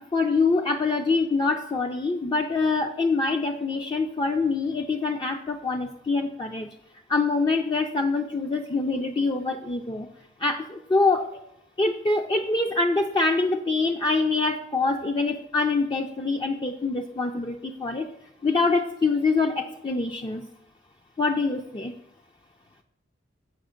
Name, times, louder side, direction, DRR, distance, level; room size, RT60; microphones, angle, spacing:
voice 1, 0.1-6.7 7.1-10.1 10.4-11.4 11.8-18.1 18.4-20.4 21.2-21.9, left 3 dB, 25° left, 3 dB, 0.4 m, -25 dB
7.7 x 5.5 x 5.0 m, 0.79 s
head